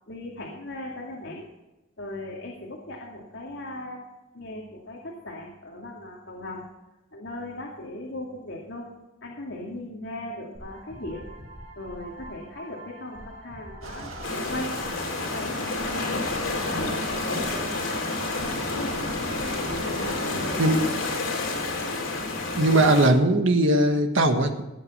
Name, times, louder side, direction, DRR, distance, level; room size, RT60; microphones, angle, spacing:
voice 1, 0.1-1.5 2.0-4.1 4.3-6.6 7.1-8.9 9.2-11.3 11.8-14.8 15.3-16.3 16.7-18.9 19.8-20.7, left 1 dB, 65° left, -3 dB, 2.5 m, -38 dB
sound 1, 10.5-21.0, right 1 dB, 50° right, 3.7 m, -44 dB
sound 2, 13.8-21.2, right 2 dB, 90° right, 2.1 m, -40 dB
sound 3, 14.2-23.1, left 3 dB, 80° left, 3.9 m, -29 dB
voice 2, 22.5-24.7, right 1 dB, 70° right, 6 dB, 1.7 m, -20 dB
18.0 x 8.1 x 5.7 m, 1.0 s
head